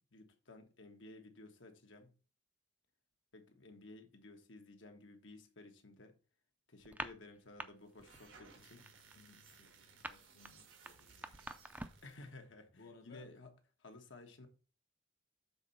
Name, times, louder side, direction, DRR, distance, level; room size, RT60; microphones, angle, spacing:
voice 1, 0.1-2.1 3.3-6.1 6.7-8.9 12.0-13.5 13.8-14.5, left 2 dB, 80° left, 1.3 m, -55 dB
sound 1, 6.8-7.7 8.0-8.3 8.6-12.1, right 2 dB, 10° right, 0.4 m, -46 dB
sound 2, 7.9-12.3, right 4 dB, 90° right, 1.6 m, -61 dB
voice 2, 9.1-11.5 12.8-13.3, left 4 dB, 55° left, 0.8 m, -61 dB
7.0 x 4.0 x 5.7 m
head